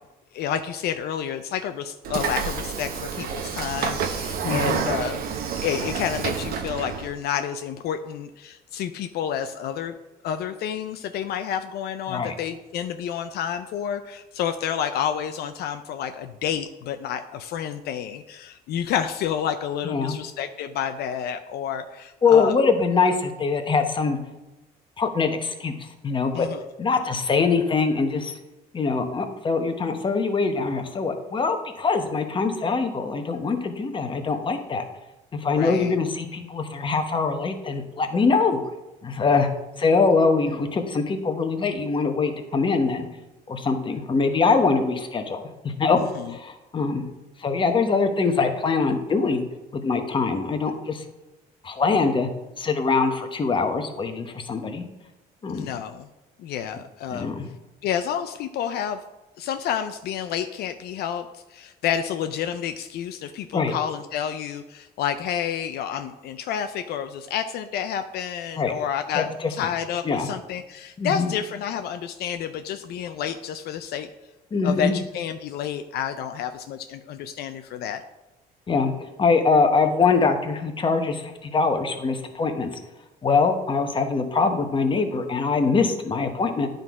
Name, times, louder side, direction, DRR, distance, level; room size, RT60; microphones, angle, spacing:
voice 1, 0.3-5.2 5.6-9.9 10.2-22.5 26.3-26.6 35.4-36.0 46.0-46.3 55.5-56.1 56.4-57.3 57.8-59.0 59.4-74.1 74.6-78.0, left 9 dB, 70° left, 8 dB, 0.5 m, -29 dB
Train / Sliding door, 2.0-7.1, right 6 dB, 60° right, 0.9 m, -29 dB
voice 2, 4.4-4.8 12.1-12.3 19.8-20.2 22.2-24.2 25.0-26.5 26.8-28.3 28.7-34.8 35.3-38.6 39.0-39.5 39.8-43.1 43.5-46.0 46.3-47.0 47.4-49.4 49.7-51.0 51.6-52.3 52.6-54.8 55.4-55.7 57.1-57.4 63.5-63.7 68.6-68.7 69.1-69.5 70.0-70.3 71.0-71.3 74.5-75.0 78.7-78.9 79.2-82.8 83.2-86.7, left 4 dB, 30° left, 6 dB, 1.0 m, -23 dB
9.7 x 3.9 x 4.7 m, 1.0 s
cardioid pair, 110°, 17 cm